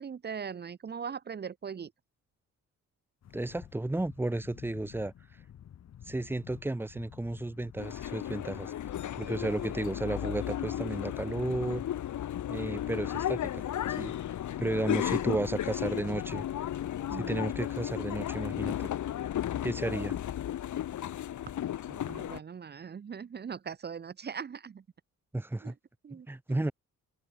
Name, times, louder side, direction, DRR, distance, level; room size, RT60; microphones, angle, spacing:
voice 1, 0.0-1.9 17.1-17.4 21.9-24.8 25.6-25.7 26.0-26.6, right 6 dB, 35° right, 1.7 m, -40 dB
sound 1, 3.2-10.1, left 10 dB, 60° left, 6.6 m, -52 dB
voice 2, 3.3-5.1 6.1-8.7 9.2-11.8 12.5-14.1 14.6-16.5 17.1-18.9 19.6-20.2 25.3-25.8 26.1-26.7, right 2 dB, 5° right, 2.1 m, -33 dB
sound 2, 7.8-22.4, left 11 dB, 75° left, 6.5 m, -34 dB
wide cardioid pair, 180°, 30 cm